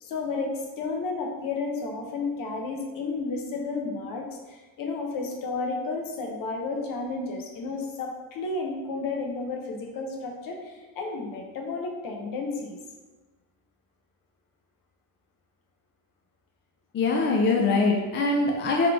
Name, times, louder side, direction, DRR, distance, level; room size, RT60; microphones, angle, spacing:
voice 1, 0.0-12.8, left 3 dB, 60° left, 1 dB, 0.8 m, -32 dB
voice 2, 16.9-18.9, left 3 dB, 30° left, 0 dB, 0.4 m, -23 dB
3.9 x 3.1 x 3.4 m, 1.2 s
cardioid pair, 155°, 39 cm